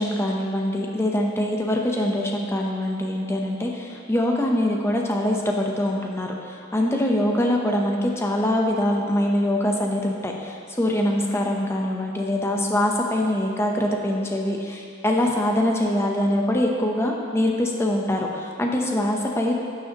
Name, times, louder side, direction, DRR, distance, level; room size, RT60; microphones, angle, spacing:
voice 1, 0.0-19.6, left 1 dB, 15° left, 0 dB, 0.8 m, -23 dB
11.5 x 7.0 x 2.9 m, 2.4 s
head